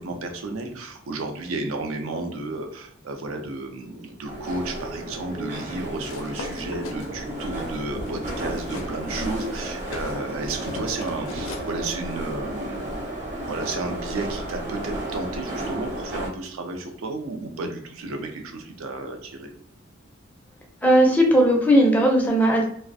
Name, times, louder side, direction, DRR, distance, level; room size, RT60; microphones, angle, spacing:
voice 1, 0.0-13.0 13.5-19.5, right 2 dB, 75° right, 5 dB, 0.4 m, -32 dB
sound 1, 4.2-16.3, right 1 dB, 35° right, 0.6 m, -33 dB
sound 2, 6.0-9.0 9.3-11.7, left 2 dB, 80° left, 0.5 m, -39 dB
voice 2, 20.8-22.7, equal, 10° left, -1 dB, 0.4 m, -17 dB
2.3 x 2.1 x 2.6 m, 0.65 s
head